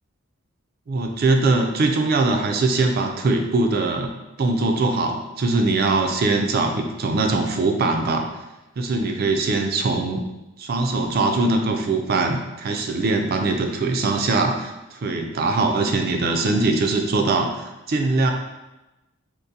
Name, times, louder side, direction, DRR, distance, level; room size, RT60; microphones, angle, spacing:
voice 1, 0.9-4.1 4.4-8.3 8.8-10.2 10.6-18.3, right 3 dB, 45° right, 3 dB, 0.3 m, -22 dB
3.7 x 2.5 x 2.7 m, 1.0 s
head